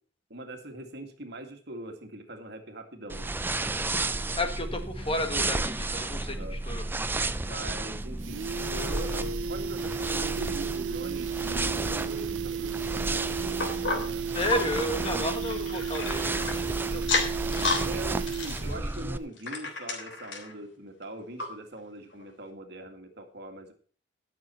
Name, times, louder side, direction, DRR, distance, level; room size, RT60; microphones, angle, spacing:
voice 1, 0.3-3.4 6.3-6.6 7.4-14.6 17.8-23.7, right 1 dB, 60° right, 5 dB, 2.1 m, -42 dB
sound 1, 3.1-19.2, right 2 dB, 10° right, 0.4 m, -33 dB
voice 2, 4.4-6.8 14.3-17.2, left 1 dB, 30° left, 6 dB, 1.6 m, -32 dB
sound 2, 7.3-7.4 7.7-7.8 8.0-18.9 19.2-19.3, right 7 dB, 80° right, 0.5 m, -34 dB
sound 3, 13.6-16.6 17.0-17.9 18.2-20.5 21.0-21.1 21.4-21.5 22.1-22.2, left 4 dB, 75° left, 3.2 m, -32 dB
17.5 x 7.0 x 4.5 m, 0.43 s
head